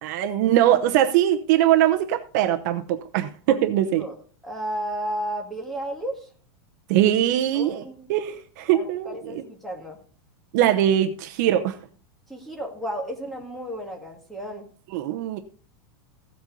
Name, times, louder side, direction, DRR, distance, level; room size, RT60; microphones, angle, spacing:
voice 1, 0.0-4.0 6.9-7.8 8.1-9.4 10.5-11.8 14.9-15.4, right 12 dB, 45° right, 7 dB, 0.8 m, -21 dB
voice 2, 4.4-6.3 7.5-8.1 8.7-10.0 12.3-14.7, right 1 dB, ahead, 0 dB, 1.9 m, -33 dB
15.5 x 7.9 x 3.9 m, 0.42 s
supercardioid pair, 175°, 13 cm